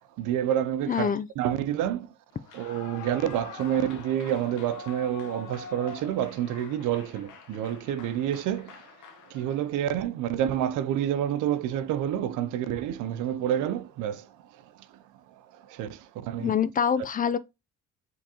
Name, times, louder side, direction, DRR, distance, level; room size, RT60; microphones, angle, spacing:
voice 1, 0.2-2.1 2.5-8.9 9.3-14.3 15.6-16.6, right 10 dB, 90° right, 0.5 m, -28 dB
voice 2, 0.9-1.3 16.4-17.4, left 7 dB, 30° left, 0.4 m, -25 dB
Clapping / Cheering / Applause, 2.4-9.8, left 5 dB, 80° left, 0.9 m, -45 dB
5.1 x 3.5 x 2.7 m
cardioid pair, 90°, 30 cm